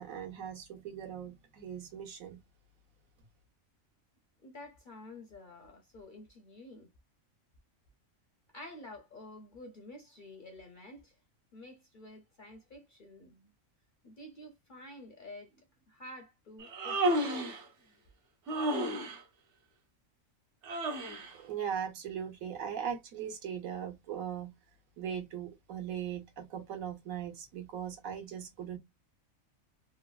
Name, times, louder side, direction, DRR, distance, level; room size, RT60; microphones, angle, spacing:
voice 1, 0.0-2.4 21.3-24.5 25.0-28.8, right 8 dB, 80° right, 1.3 m, -39 dB
voice 2, 4.4-6.9 8.5-11.1 11.5-13.5 14.0-17.4, left 1 dB, 55° left, 0.6 m, -50 dB
Human voice, 16.6-17.6 18.5-19.2 20.6-21.3, right 1 dB, 60° right, 1.0 m, -32 dB
3.2 x 2.2 x 2.3 m
omnidirectional pair, 1.4 m